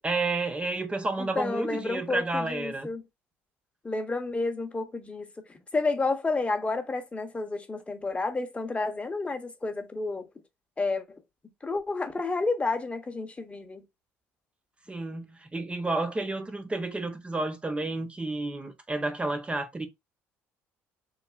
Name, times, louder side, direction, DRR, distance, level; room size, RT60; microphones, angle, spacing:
voice 1, 0.0-2.9 14.9-19.9, right 2 dB, 20° right, 0.6 m, -31 dB
voice 2, 1.3-3.0 3.8-10.3 10.8-11.2 11.6-13.8, left 3 dB, 20° left, 0.7 m, -30 dB
3.1 x 2.4 x 2.3 m
supercardioid pair, 75°, 6 cm